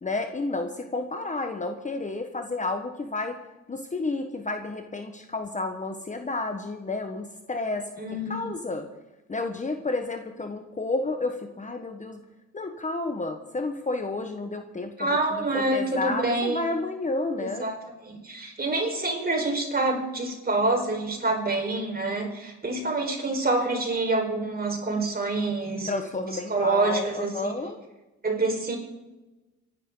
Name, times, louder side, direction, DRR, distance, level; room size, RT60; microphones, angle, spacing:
voice 1, 0.0-3.4 3.7-7.9 8.3-8.9 9.3-12.2 12.5-17.7 25.9-27.8, left 2 dB, 25° left, 6 dB, 1.3 m, -31 dB
voice 2, 8.0-8.5 15.0-16.7 17.4-17.7 18.0-25.9 26.5-27.6 28.2-28.8, right 2 dB, 30° right, 1 dB, 4.8 m, -27 dB
26.5 x 11.0 x 3.9 m, 1.1 s
cardioid pair, 90°, 30 cm